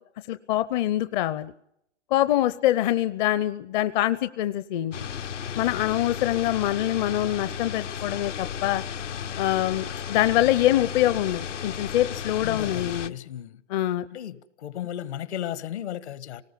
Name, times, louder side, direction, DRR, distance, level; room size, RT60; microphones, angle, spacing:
voice 1, 0.3-1.5 2.1-5.0 5.6-8.8 9.4-13.1 13.7-14.1, left 13 dB, 40° left, 0.7 m, -24 dB
sound 1, 4.9-13.1, left 8 dB, 80° left, 1.4 m, -34 dB
voice 2, 12.4-13.6 14.1-16.4, left 11 dB, 65° left, 1.7 m, -35 dB
29.0 x 19.0 x 5.5 m
hypercardioid pair, 130°, 36 cm